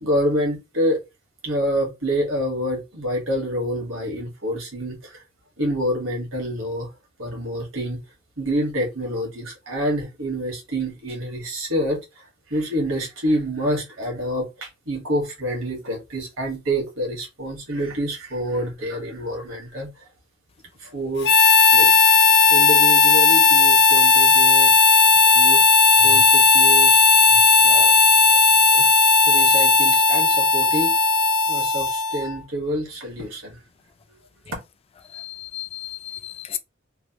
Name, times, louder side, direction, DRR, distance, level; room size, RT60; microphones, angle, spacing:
voice 1, 0.0-1.0 1.4-5.2 5.6-6.9 7.2-8.0 8.4-19.9 20.8-21.3 21.7-21.9 22.5-24.9 25.3-25.6 26.0-27.0 27.5-27.9 28.7-28.9 29.3-30.9 31.5-33.6, equal, 85° right, 1.3 m, -27 dB
Harmonica, 21.2-32.3, left 4 dB, 60° left, 0.9 m, -15 dB
voice 2, 35.1-36.6, left 11 dB, 30° left, 0.3 m, -34 dB
3.1 x 2.3 x 2.8 m
head